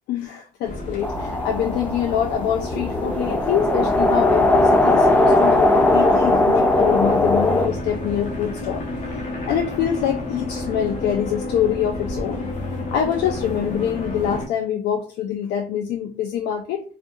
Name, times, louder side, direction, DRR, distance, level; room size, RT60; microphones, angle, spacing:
voice 1, 0.1-8.9 9.5-12.5 12.9-16.8, left 9 dB, 75° left, 3 dB, 0.4 m, -25 dB
sound 1, 0.6-14.5, left 2 dB, 45° left, 0.9 m, -30 dB
sound 2, 1.0-7.7, left 2 dB, 10° left, 0.3 m, -19 dB
2.4 x 2.3 x 2.6 m, 0.38 s
cardioid pair, 110°, 17 cm